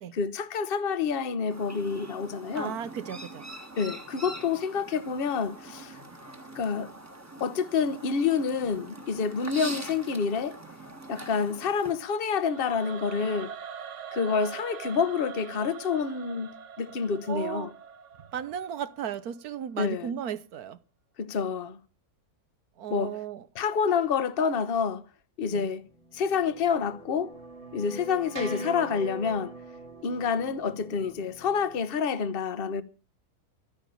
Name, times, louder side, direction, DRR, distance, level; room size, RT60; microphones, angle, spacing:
voice 1, 0.1-2.8 3.8-6.0 6.5-6.9 7.4-10.6 11.1-13.5 14.1-17.7 19.8-20.1 21.2-21.8 22.9-23.1 23.5-25.0 25.4-25.8 26.1-27.3 27.7-29.5 30.0-32.8, left 6 dB, 40° left, 1.0 m, -28 dB
Chirp tweet, 1.5-11.9, right 2 dB, 10° right, 1.4 m, -43 dB
voice 2, 2.5-3.5 17.3-17.7 18.3-20.8 22.8-23.4 25.5-25.7, right 9 dB, 70° right, 1.3 m, -35 dB
Singing / Musical instrument, 12.4-19.5, right 7 dB, 55° right, 1.0 m, -43 dB
sound 1, 26.1-31.8, right 1 dB, 35° right, 2.1 m, -42 dB
14.0 x 10.0 x 7.1 m
omnidirectional pair, 1.7 m